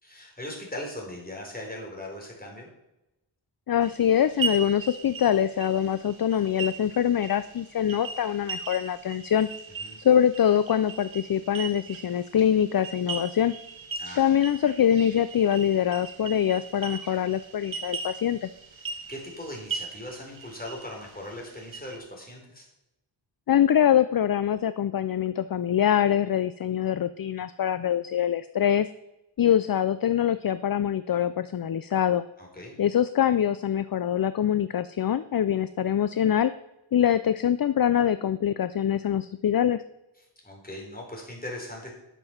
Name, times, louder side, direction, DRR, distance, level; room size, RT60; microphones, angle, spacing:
voice 1, 0.0-2.7 9.8-10.0 14.0-14.2 18.8-22.7 32.4-32.8 40.4-41.9, left 1 dB, 20° left, -1 dB, 3.6 m, -39 dB
voice 2, 3.7-9.5 10.0-13.5 14.2-18.5 23.5-28.9 29.4-32.2 32.8-36.5 36.9-39.8, left 9 dB, 45° left, 13 dB, 0.4 m, -24 dB
sound 1, 3.8-22.0, right 5 dB, 70° right, 1.3 m, -39 dB
11.0 x 6.9 x 5.7 m, 0.93 s
wide cardioid pair, 80°, 49 cm